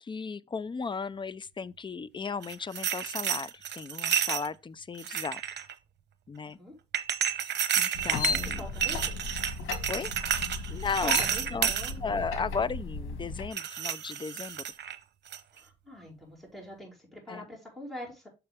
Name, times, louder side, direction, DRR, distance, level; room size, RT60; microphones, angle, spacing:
voice 1, 0.0-5.4 6.3-6.6 7.8-8.6 8.9-9.0 9.9-10.1 10.7-11.2 11.5-11.7 12.0-14.6 17.3-17.5, left 5 dB, 25° left, 0.5 m, -35 dB
sound 1, 2.4-4.5 5.0-5.7 6.9-11.9 13.5-15.0 15.3-15.6, right 9 dB, 60° right, 0.9 m, -30 dB
sound 2, 7.9-13.5, left 4 dB, 85° left, 1.7 m, -35 dB
voice 2, 8.4-9.0 11.0-12.0 15.5-18.3, left 1 dB, ahead, 4.9 m, -44 dB
7.0 x 6.5 x 3.5 m
cardioid pair, 90°, 20 cm